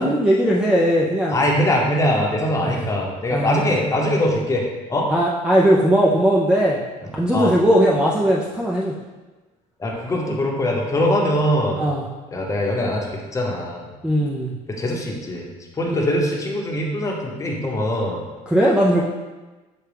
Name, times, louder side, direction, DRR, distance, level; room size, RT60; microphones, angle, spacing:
voice 1, 0.0-1.4 2.6-2.8 3.3-3.7 5.1-6.8 7.1-8.9 11.8-12.0 14.0-14.5 15.9-16.0 18.5-19.0, equal, 5° right, -3 dB, 0.3 m, -18 dB
voice 2, 1.3-4.6 4.9-5.1 7.0-7.5 9.8-11.8 12.3-13.9 14.7-15.5 15.8-18.2, left 1 dB, 20° left, -1 dB, 0.8 m, -22 dB
6.1 x 2.2 x 3.3 m, 1.2 s
cardioid pair, 115°, 15 cm